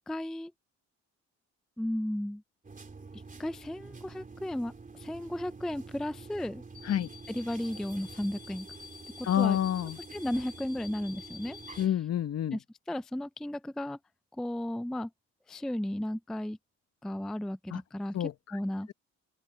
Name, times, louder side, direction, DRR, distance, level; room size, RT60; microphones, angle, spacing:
voice 1, 0.1-0.5 1.8-2.4 3.4-6.6 7.3-8.7 9.2-9.6 10.1-11.9 12.5-14.0 14.3-15.1 15.5-16.6 17.0-18.9, left 1 dB, ahead, 0.3 m, -35 dB
sound 1, 2.6-11.9, right 1 dB, 25° right, 3.3 m, -47 dB
voice 2, 9.2-10.0 11.8-12.6 17.7-17.8 18.1-18.3, left 10 dB, 55° left, 1.2 m, -28 dB
open air
cardioid pair, 90°, 30 cm